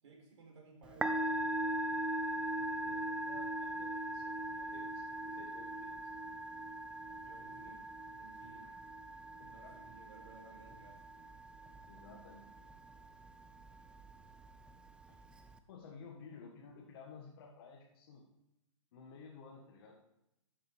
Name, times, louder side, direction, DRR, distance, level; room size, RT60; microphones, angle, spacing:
voice 1, 0.0-1.8 7.2-7.9 8.2-8.7 9.5-11.0 15.9-16.1, right 3 dB, 65° right, 0 dB, 4.1 m, -58 dB
Musical instrument, 0.8-15.6, right 1 dB, 5° right, 0.4 m, -40 dB
voice 2, 2.6-5.9 8.6-8.7 9.4-9.8 11.9-12.5 15.1-15.2 15.7-18.2 18.9-20.0, left 5 dB, 45° left, -1 dB, 1.7 m, -55 dB
13.0 x 7.7 x 3.6 m, 0.86 s
hypercardioid pair, 130°, 17 cm